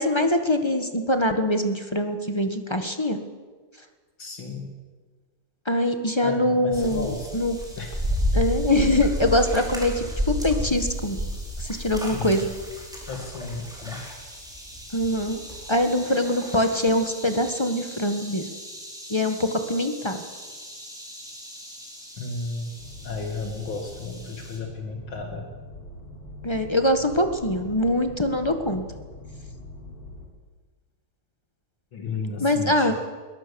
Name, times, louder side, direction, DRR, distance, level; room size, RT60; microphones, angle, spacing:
voice 1, 0.0-3.2 5.6-7.6 8.3-11.2 11.6-12.4 14.9-15.4 15.7-18.5 19.1-20.3 26.4-28.8 32.4-32.9, left 1 dB, 15° left, 7 dB, 1.2 m, -23 dB
voice 2, 4.2-4.7 6.2-7.3 7.7-8.1 12.1-12.4 13.1-14.1 22.2-22.7 23.0-25.5 31.9-32.9, left 3 dB, 60° left, 3 dB, 2.7 m, -33 dB
sound 1, 6.7-24.6, equal, ahead, 4.6 m, -33 dB
sound 2, 22.8-30.3, left 2 dB, 90° left, 4.9 m, -42 dB
22.0 x 19.0 x 7.0 m, 1.5 s
omnidirectional pair, 2.4 m